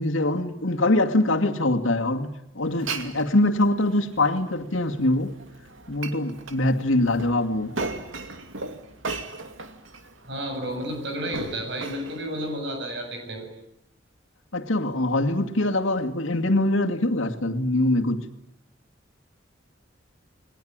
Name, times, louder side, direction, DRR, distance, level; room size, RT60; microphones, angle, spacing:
voice 1, 0.0-5.3 5.9-7.7 14.5-18.2, left 1 dB, 90° left, 2.4 m, -23 dB
Glass, 2.6-12.6, right 3 dB, 85° right, 2.5 m, -38 dB
voice 2, 10.3-13.5, right 1 dB, 60° right, 7.5 m, -31 dB
30.0 x 22.0 x 9.0 m
head